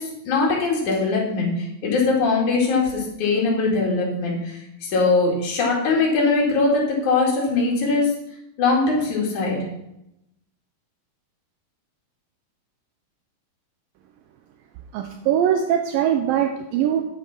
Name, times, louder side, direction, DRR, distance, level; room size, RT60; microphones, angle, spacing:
voice 1, 0.0-8.2 8.6-9.6, left 3 dB, 55° left, -3 dB, 3.7 m, -21 dB
voice 2, 14.9-17.1, right 9 dB, 80° right, 5 dB, 2.2 m, -21 dB
9.8 x 7.9 x 4.4 m, 0.85 s
omnidirectional pair, 4.4 m